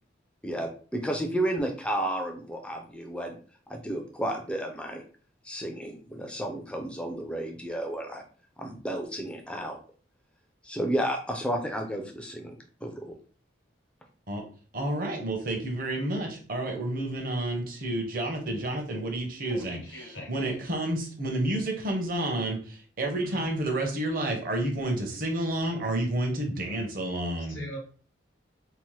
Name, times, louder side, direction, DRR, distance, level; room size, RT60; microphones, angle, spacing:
voice 1, 0.4-3.4 3.7-5.0 5.4-8.2 8.6-9.8 10.6-13.1, right 1 dB, 5° left, 0.3 m, -32 dB
voice 2, 14.7-27.6, right 1 dB, 45° right, 0.7 m, -30 dB
voice 3, 19.4-20.5 23.2-23.5 27.5-27.8, left 1 dB, 80° left, 0.9 m, -42 dB
2.8 x 2.0 x 3.1 m
head